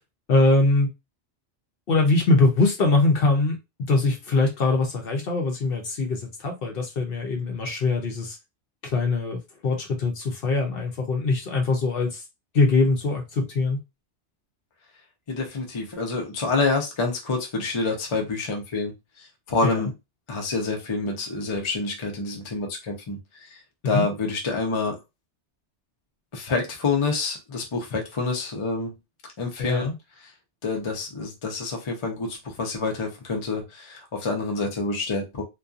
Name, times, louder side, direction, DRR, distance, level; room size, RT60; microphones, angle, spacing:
voice 1, 0.3-0.9 1.9-8.4 8.9-12.2 12.5-13.8 19.6-19.9 23.8-24.1 29.6-29.9, left 3 dB, 60° left, 0.8 m, -22 dB
voice 2, 15.3-18.9 19.2-19.9 20.3-23.6 23.8-25.0 26.3-28.9 29.4-29.9 30.6-35.4, left 3 dB, 35° left, 0.6 m, -27 dB
2.7 x 2.3 x 2.4 m
omnidirectional pair, 1.2 m